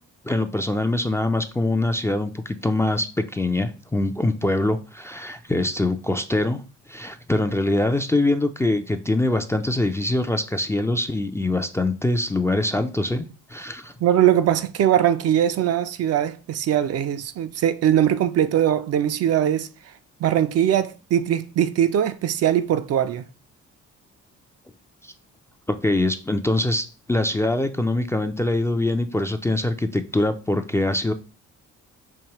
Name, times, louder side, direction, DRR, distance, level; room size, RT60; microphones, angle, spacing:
voice 1, 0.2-6.6 6.9-13.2 13.5-13.9 25.0-25.1 25.7-31.1, left 2 dB, 10° left, 0.3 m, -23 dB
voice 2, 14.0-19.7 20.2-23.2, right 10 dB, 55° right, 0.4 m, -21 dB
4.7 x 2.7 x 2.9 m
cardioid pair, 90°, 30 cm